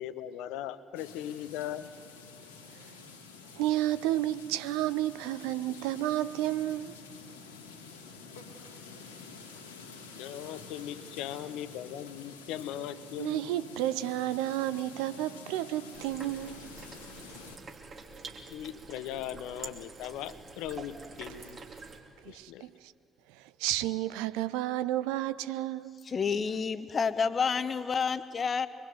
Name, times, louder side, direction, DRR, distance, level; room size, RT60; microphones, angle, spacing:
voice 1, 0.0-1.9 10.2-13.5 18.5-21.6 22.3-22.7, left 11 dB, 65° left, 0.8 m, -39 dB
sound 1, 0.9-17.6, left 4 dB, 80° left, 2.0 m, -49 dB
voice 2, 3.6-7.0 13.2-16.6 22.2-22.9 23.3-26.1, right 14 dB, 70° right, 0.5 m, -31 dB
sound 2, 15.9-22.0, right 4 dB, 45° right, 2.9 m, -47 dB
voice 3, 26.1-28.7, left 5 dB, 40° left, 1.1 m, -29 dB
24.5 x 22.5 x 7.9 m
figure-of-eight pair, 45°, 0 cm